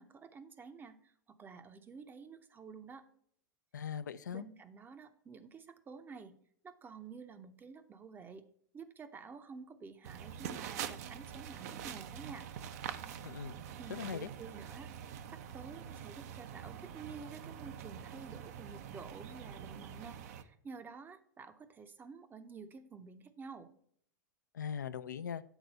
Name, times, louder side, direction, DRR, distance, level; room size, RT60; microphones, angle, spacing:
voice 1, 0.0-3.0 4.3-6.3 6.6-8.4 8.7-12.5 13.8-23.7, right 5 dB, 20° right, 10 dB, 0.7 m, -50 dB
voice 2, 3.7-4.4 13.2-13.6 13.9-14.3 24.5-25.4, left 7 dB, 80° left, 12 dB, 0.4 m, -40 dB
sound 1, 10.0-20.4, right 9 dB, 55° right, 0.6 m, -45 dB
8.1 x 4.0 x 5.3 m, 0.66 s
figure-of-eight pair, 95°, 10 cm